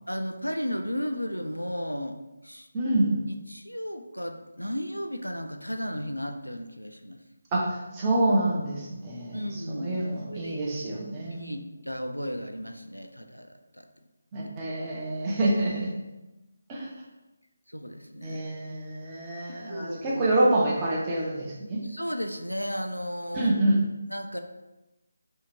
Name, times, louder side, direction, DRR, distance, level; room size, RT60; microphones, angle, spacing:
voice 1, 0.1-2.2 2.4-2.7 3.5-7.2 9.3-10.6 11.3-13.9 17.7-18.4 19.7-20.2 21.8-23.5 24.1-24.4, equal, 90° left, 6 dB, 0.3 m, -34 dB
voice 2, 2.7-3.2 7.5-11.6 14.3-15.9 16.7-16.9 18.2-21.8 23.3-23.8, right 1 dB, 20° right, -4 dB, 0.5 m, -27 dB
2.6 x 2.4 x 3.0 m, 1.0 s
figure-of-eight pair, 155°, 0 cm